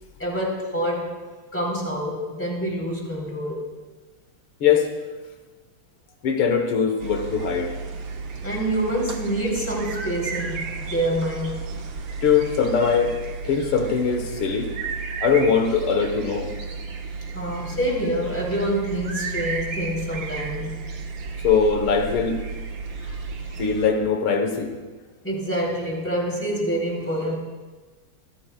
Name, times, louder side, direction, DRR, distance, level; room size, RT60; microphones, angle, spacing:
voice 1, 0.2-1.1 1.5-3.6 8.4-11.6 17.3-20.7 23.0-23.2 25.2-27.4, right 1 dB, 5° left, -3 dB, 3.2 m, -26 dB
voice 2, 6.2-7.7 12.2-13.2 13.4-14.7 15.2-16.5 21.4-22.4 23.6-24.7, left 6 dB, 85° left, 4 dB, 2.1 m, -21 dB
sound 1, 7.0-23.9, right 4 dB, 65° right, 2.0 m, -33 dB
25.5 x 14.0 x 2.3 m, 1.3 s
omnidirectional pair, 2.3 m